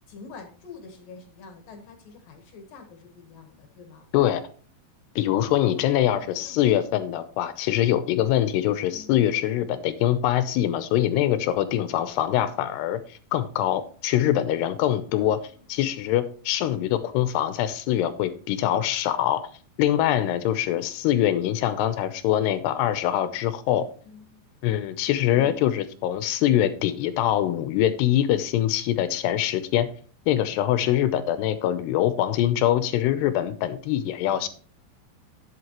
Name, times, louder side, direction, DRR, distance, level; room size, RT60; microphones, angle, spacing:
voice 1, 0.1-4.1 5.8-6.8 8.9-9.3 12.3-12.5 15.2-15.6 24.0-24.4 25.3-25.6, left 4 dB, 65° left, 4 dB, 2.6 m, -47 dB
voice 2, 4.1-4.5 5.2-15.4 15.7-19.5 19.8-23.9 24.6-29.9 30.3-34.5, left 12 dB, 80° left, 12 dB, 2.6 m, -24 dB
11.0 x 8.1 x 3.0 m, 0.42 s
omnidirectional pair, 5.3 m